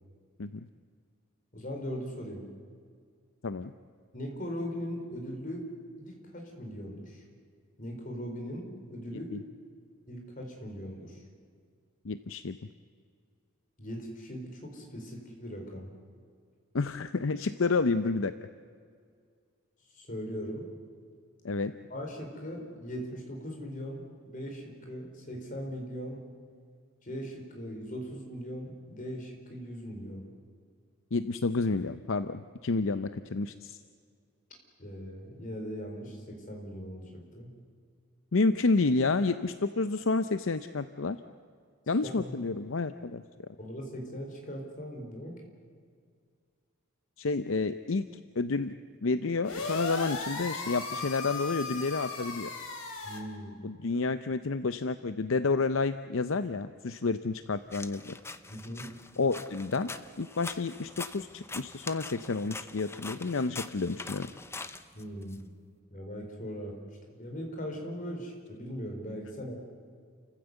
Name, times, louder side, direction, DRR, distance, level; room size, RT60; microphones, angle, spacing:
voice 1, 1.5-2.5 4.1-5.7 6.0-7.2 7.8-9.4 10.1-11.2 13.8-15.9 19.9-20.6 21.9-26.2 27.0-30.2 34.8-37.5 42.1-42.3 43.6-45.4 53.0-53.6 58.5-58.8 64.9-65.5 65.9-66.8 67.2-69.6, equal, 40° left, 2 dB, 4.6 m, -39 dB
voice 2, 12.0-12.6 16.7-18.3 21.4-21.7 31.1-33.8 38.3-41.2 41.9-43.5 47.2-48.1 48.4-48.7 49.0-52.5 53.6-58.1 59.2-59.9 60.2-64.3, left 3 dB, 65° left, 11 dB, 0.6 m, -30 dB
sound 1, 49.4-53.2, left 3 dB, 85° left, 3.5 m, -36 dB
sound 2, 57.7-65.4, left 3 dB, 10° left, 0.7 m, -43 dB
30.0 x 15.0 x 8.1 m, 2.1 s
head